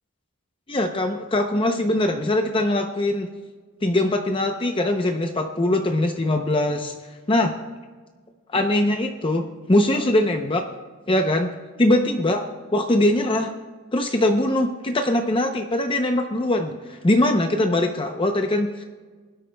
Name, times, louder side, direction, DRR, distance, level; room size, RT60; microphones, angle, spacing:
voice 1, 0.7-3.3 3.8-6.9 7.3-7.5 8.5-10.7 11.1-11.5 11.8-13.5 13.9-18.8, left 1 dB, 25° left, 5 dB, 0.6 m, -22 dB
21.0 x 12.5 x 2.3 m, 1.4 s
head